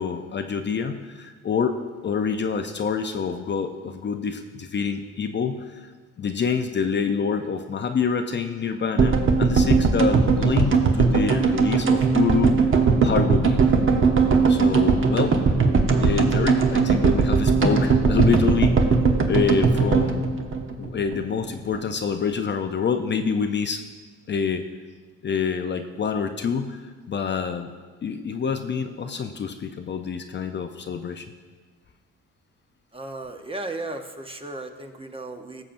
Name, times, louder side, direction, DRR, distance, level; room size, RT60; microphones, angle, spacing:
voice 1, 0.0-5.9 6.2-12.6 13.0-13.7 14.5-15.4 16.0-18.8 19.3-20.3 20.8-23.8 24.3-24.6 25.2-27.7 28.0-31.3, left 6 dB, 35° left, 6 dB, 0.5 m, -26 dB
sound 1, 9.0-21.2 21.5-21.6 21.7-21.8, right 4 dB, 40° right, 1.0 m, -19 dB
voice 2, 32.9-35.6, right 2 dB, 20° right, 5 dB, 0.8 m, -35 dB
16.0 x 7.2 x 2.6 m, 1.4 s
cardioid pair, 90°, 30 cm